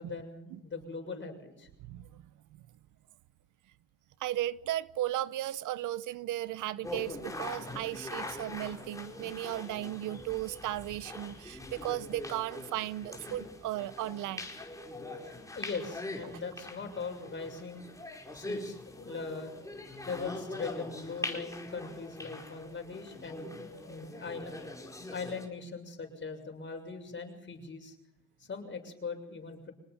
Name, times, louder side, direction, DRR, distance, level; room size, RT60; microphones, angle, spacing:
voice 1, 0.0-1.7 15.2-17.9 18.3-19.5 20.0-23.5 23.9-24.8 25.1-28.0 28.4-29.7, left 4 dB, 40° left, 6.9 m, -40 dB
voice 2, 1.9-2.2 4.2-14.5 16.2-16.3, right 14 dB, 80° right, 0.9 m, -35 dB
sound 1, 6.8-25.5, left 2 dB, 10° left, 4.9 m, -43 dB
26.5 x 19.0 x 5.9 m
cardioid pair, 90°, 30 cm